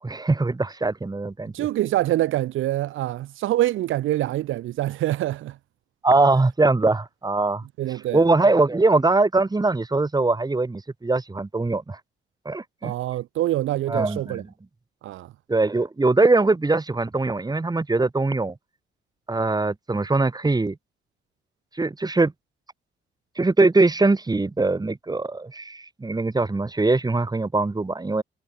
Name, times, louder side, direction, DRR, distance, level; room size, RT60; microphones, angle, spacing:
voice 1, 0.0-1.7 6.0-7.6 8.1-12.0 12.5-12.9 13.9-14.4 15.5-18.5 19.3-20.8 21.8-22.3 23.4-28.2, right 3 dB, 20° right, 5.8 m, -22 dB
voice 2, 1.5-5.6 7.8-8.2 12.8-14.4 15.0-15.3, right 14 dB, 85° right, 2.8 m, -25 dB
cardioid pair, 90°, 20 cm